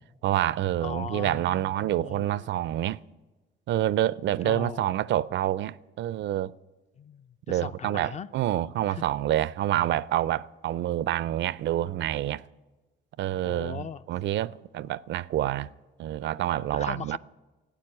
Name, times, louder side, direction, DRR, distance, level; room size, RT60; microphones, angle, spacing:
voice 1, 0.2-3.0 3.7-6.5 7.5-12.4 13.2-15.7 16.0-17.2, right 13 dB, 65° right, 0.4 m, -27 dB
voice 2, 0.8-2.5 4.4-5.0 7.0-8.3 8.9-9.0 13.4-14.0 16.7-17.2, left 6 dB, 35° left, 0.5 m, -39 dB
12.0 x 8.8 x 9.8 m
cardioid pair, 90°, 20 cm